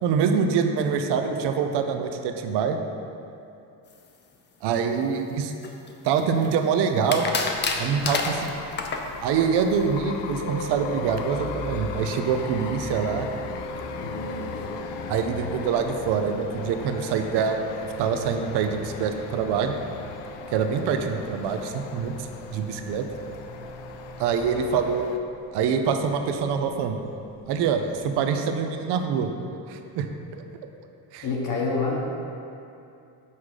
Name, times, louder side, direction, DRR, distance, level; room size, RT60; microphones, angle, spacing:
voice 1, 0.0-2.8 4.6-5.5 6.0-7.3 7.8-8.5 9.2-13.3 15.1-19.8 20.5-23.0 24.2-25.1 25.5-27.0 27.5-29.3 29.7-30.1 31.1-31.3, right 6 dB, 65° right, 6 dB, 0.7 m, -25 dB
sound 1, 5.6-6.5 7.1-9.1, left 4 dB, 25° left, 0.5 m, -28 dB
sound 2, 7.5-25.2, left 7 dB, 70° left, 0.6 m, -38 dB
sound 3, 10.4-28.2, right 3 dB, 35° right, 1.1 m, -41 dB
voice 2, 14.0-14.7 31.2-32.1, left 3 dB, 45° left, -3 dB, 1.1 m, -28 dB
5.7 x 4.8 x 6.4 m, 2.6 s
cardioid pair, 140°, 43 cm